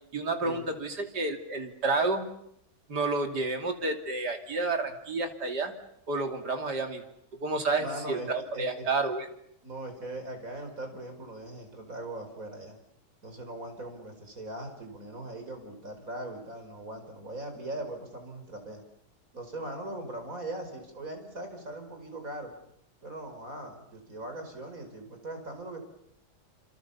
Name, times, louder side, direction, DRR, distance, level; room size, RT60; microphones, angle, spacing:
voice 1, 0.1-2.3 2.9-5.7 6.1-7.1 7.4-9.3, right 3 dB, 75° right, 5 dB, 3.4 m, -30 dB
voice 2, 7.8-8.3 8.5-8.9 9.6-12.8 13.2-18.8 19.3-22.5 23.0-25.8, right 1 dB, 55° right, 6 dB, 5.4 m, -40 dB
28.0 x 27.0 x 7.1 m, 0.74 s
omnidirectional pair, 1.8 m